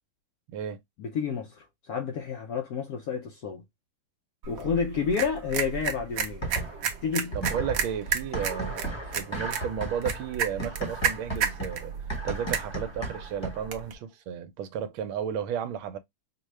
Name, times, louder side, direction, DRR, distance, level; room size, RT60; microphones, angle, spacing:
voice 1, 1.0-3.6 4.5-6.5 7.0-7.3, left 6 dB, 75° left, 0.8 m, -30 dB
sound 1, 4.4-13.9, right 7 dB, 60° right, 0.9 m, -33 dB
sound 2, 6.4-7.0 7.3-13.8, right 1 dB, 20° left, 0.7 m, -35 dB
voice 2, 7.3-11.9 12.2-16.0, right 8 dB, 80° right, 1.4 m, -33 dB
5.1 x 2.2 x 3.1 m
omnidirectional pair, 2.2 m